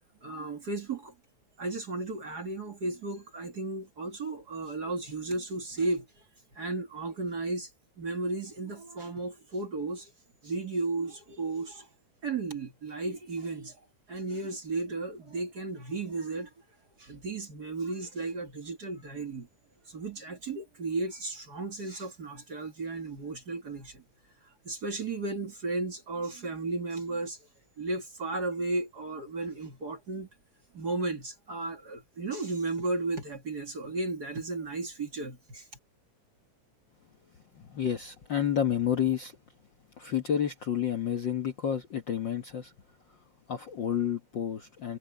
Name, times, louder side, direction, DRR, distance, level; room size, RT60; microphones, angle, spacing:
voice 1, 0.2-1.1 1.6-6.1 6.6-7.7 8.0-10.1 10.4-11.9 12.2-13.8 14.1-16.5 17.0-19.5 19.9-24.0 24.6-27.4 27.8-30.3 30.7-35.7, right 3 dB, 35° right, 2.3 m, -34 dB
voice 2, 37.6-39.3 40.0-42.7 43.5-45.0, left 9 dB, 50° left, 1.5 m, -30 dB
omnidirectional pair, 3.4 m